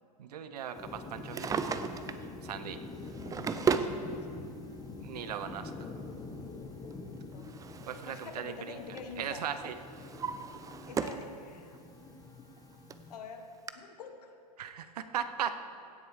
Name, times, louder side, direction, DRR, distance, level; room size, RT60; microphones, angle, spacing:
voice 1, 0.2-1.6 2.4-2.9 5.0-5.7 7.9-8.8 9.2-9.7 14.6-15.6, right 9 dB, 75° right, 10 dB, 0.9 m, -38 dB
sound 1, 0.7-13.2, left 3 dB, 20° left, 1.2 m, -45 dB
Drawer open or close, 1.1-2.3 3.0-4.0 5.0-5.1 6.9-8.5 8.7-9.1 9.6-11.3 11.7-11.8 12.6-12.7 12.9-13.0 13.7-13.8, right 6 dB, 15° right, 0.5 m, -35 dB
voice 2, 3.2-4.5 7.3-7.5 7.8-9.5 10.9-11.7 13.1-13.5 13.7-14.3, left 6 dB, 80° left, 5 dB, 1.4 m, -47 dB
16.5 x 7.8 x 4.9 m, 2.7 s
hypercardioid pair, 110°, 20 cm